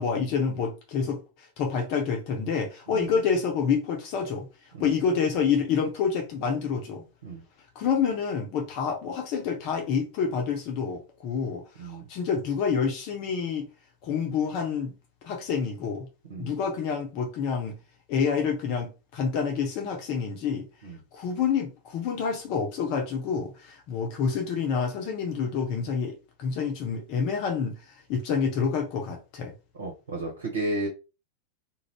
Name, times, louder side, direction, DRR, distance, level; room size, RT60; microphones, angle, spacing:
voice 1, 0.0-4.5 4.8-7.0 7.7-13.7 14.0-14.9 15.2-16.1 16.4-17.8 18.1-20.7 21.1-29.5, left 6 dB, 45° left, 0.6 m, -28 dB
voice 2, 29.8-30.9, right 2 dB, 70° right, 0.8 m, -33 dB
2.5 x 2.0 x 3.2 m
figure-of-eight pair, 90°, 0 cm